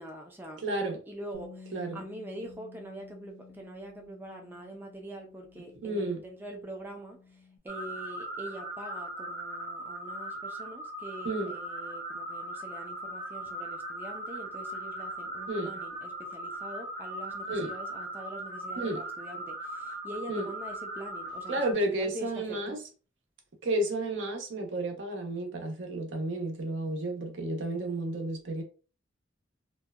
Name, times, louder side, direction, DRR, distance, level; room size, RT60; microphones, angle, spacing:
voice 1, 0.0-0.6 1.1-22.8, right 1 dB, 10° right, 0.3 m, -44 dB
voice 2, 0.6-1.0 1.7-2.0 5.8-6.2 11.2-11.5 15.5-15.7 17.5-17.7 18.8-19.0 20.3-20.5 21.5-22.8 23.6-28.6, right 1 dB, 75° right, 0.7 m, -32 dB
Bass guitar, 1.3-7.6, left 5 dB, 90° left, 0.7 m, -53 dB
sound 1, 7.7-21.7, right 1 dB, 40° right, 0.7 m, -39 dB
2.7 x 2.1 x 2.3 m
head